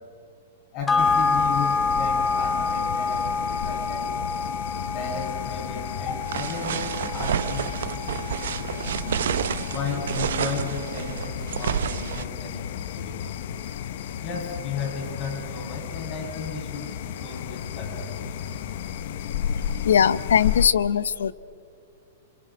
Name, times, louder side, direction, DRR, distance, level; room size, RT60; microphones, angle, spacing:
voice 1, 0.7-4.1 4.9-9.2 9.7-13.4 14.2-16.9 17.2-18.7, left 5 dB, 40° left, 1 dB, 6.7 m, -35 dB
sound 1, 0.9-9.6 10.0-10.1, left 4 dB, 15° left, 0.6 m, -27 dB
sound 2, 1.0-20.7, left 9 dB, 60° left, 0.9 m, -33 dB
sound 3, 6.3-12.2, right 9 dB, 75° right, 0.8 m, -29 dB
voice 2, 19.9-21.3, left 8 dB, 90° left, 18 dB, 0.7 m, -20 dB
27.5 x 24.0 x 6.2 m, 2.4 s
hypercardioid pair, 135°, 0 cm